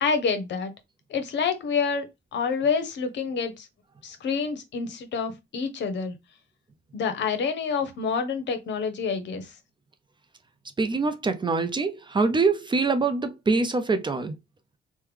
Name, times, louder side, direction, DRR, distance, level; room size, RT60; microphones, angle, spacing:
voice 1, 0.0-0.7 1.1-2.1 2.3-3.7 4.0-6.1 6.9-9.5, left 5 dB, 65° left, 0.8 m, -27 dB
voice 2, 10.8-14.4, right 4 dB, 25° right, 0.5 m, -24 dB
3.2 x 2.2 x 3.2 m
cardioid pair, 90°, 20 cm